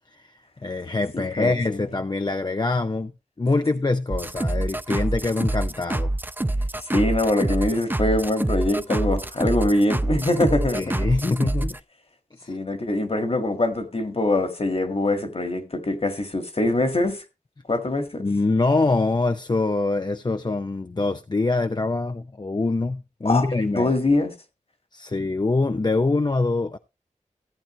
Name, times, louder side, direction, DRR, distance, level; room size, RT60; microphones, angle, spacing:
voice 1, 0.6-3.1 3.4-6.1 10.7-11.8 12.4-12.6 18.2-23.9 24.9-26.8, left 3 dB, 35° left, 0.6 m, -24 dB
voice 2, 1.1-1.8 6.9-11.0 12.5-17.2 17.7-18.2 23.3-23.5 23.7-24.3, left 2 dB, 50° left, 1.8 m, -23 dB
sound 1, 4.1-11.8, right 1 dB, 15° right, 0.5 m, -26 dB
14.5 x 8.7 x 3.1 m
wide cardioid pair, 50°, 13 cm